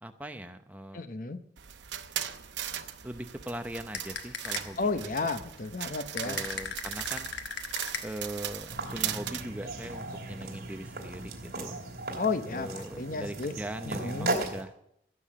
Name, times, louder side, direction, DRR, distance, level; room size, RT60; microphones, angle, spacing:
voice 1, 0.0-1.0 3.0-5.1 6.2-7.4 8.0-11.8 12.5-14.7, right 1 dB, 10° right, 7 dB, 0.7 m, -40 dB
voice 2, 0.9-1.4 4.8-6.4 12.2-13.5 14.0-14.4, left 4 dB, 50° left, 10 dB, 0.7 m, -32 dB
sound 1, 1.6-9.4, right 10 dB, 90° right, 0.8 m, -38 dB
sound 2, 3.9-4.9 6.2-8.4, left 6 dB, 90° left, 1.1 m, -38 dB
sound 3, 8.7-14.6, right 2 dB, 55° right, 2.8 m, -37 dB
16.0 x 7.0 x 7.4 m, 0.75 s
head